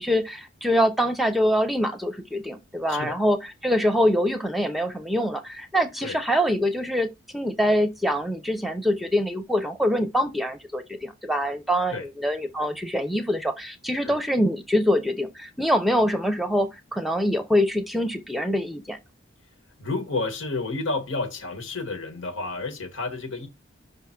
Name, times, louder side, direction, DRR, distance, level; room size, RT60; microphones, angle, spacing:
voice 1, 0.0-19.0, equal, ahead, 0.6 m, -24 dB
voice 2, 19.8-23.5, left 3 dB, 85° left, 1.4 m, -30 dB
5.6 x 3.5 x 5.8 m
head